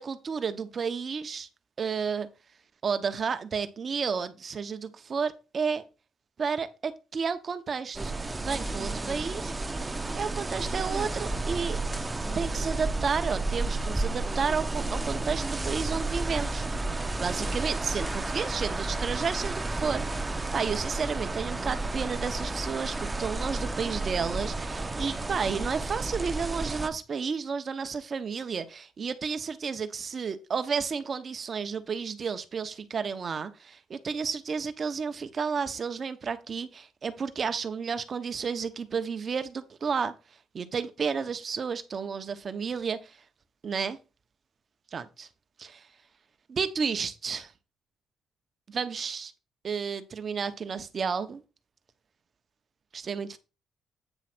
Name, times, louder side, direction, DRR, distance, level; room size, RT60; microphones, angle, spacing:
voice 1, 0.0-1.5 1.8-2.3 2.8-5.8 6.4-8.1 8.4-9.7 10.1-11.8 12.3-16.7 17.2-40.1 40.5-43.2 43.6-44.0 44.9-45.3 45.6-45.8 46.5-47.5 48.7-49.3 49.6-51.4 52.9-53.4, right 6 dB, 45° right, 1.0 m, -32 dB
sound 1, 7.9-26.9, right 2 dB, 20° right, 0.8 m, -32 dB
9.0 x 3.1 x 6.1 m
cardioid pair, 90°, 0 cm